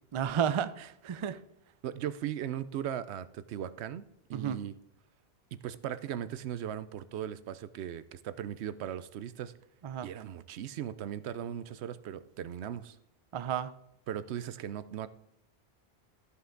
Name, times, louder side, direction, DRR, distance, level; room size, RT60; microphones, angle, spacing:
voice 1, 0.1-1.4 4.3-4.6 9.8-10.1 13.3-13.7, right 8 dB, 50° right, 0.3 m, -32 dB
voice 2, 1.8-4.0 4.3-4.7 5.6-9.5 10.0-13.0 14.1-15.1, right 10 dB, 85° right, 0.8 m, -38 dB
13.0 x 5.5 x 3.8 m
omnidirectional pair, 1.1 m